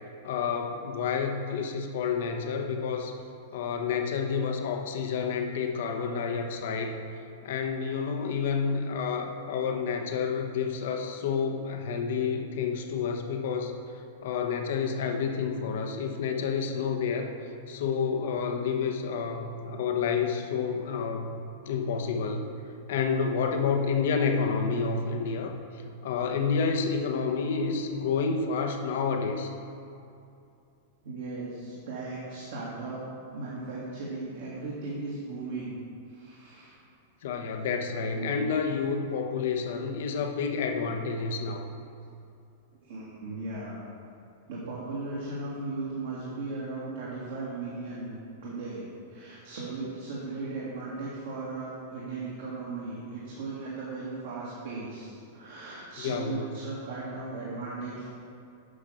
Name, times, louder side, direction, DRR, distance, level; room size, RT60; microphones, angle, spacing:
voice 1, 0.2-3.1 3.5-7.0 7.4-13.7 14.2-17.3 17.7-21.3 21.6-22.5 22.9-25.6 26.0-29.5 37.2-41.7 56.0-56.5, left 5 dB, 55° left, 4 dB, 1.0 m, -29 dB
voice 2, 31.0-33.0 33.3-35.7 36.1-36.8 38.1-38.3 42.7-43.8 44.5-48.2 48.4-58.1, right 3 dB, 60° right, -7 dB, 2.2 m, -37 dB
9.8 x 6.1 x 5.7 m, 2.6 s
figure-of-eight pair, 95°, 0 cm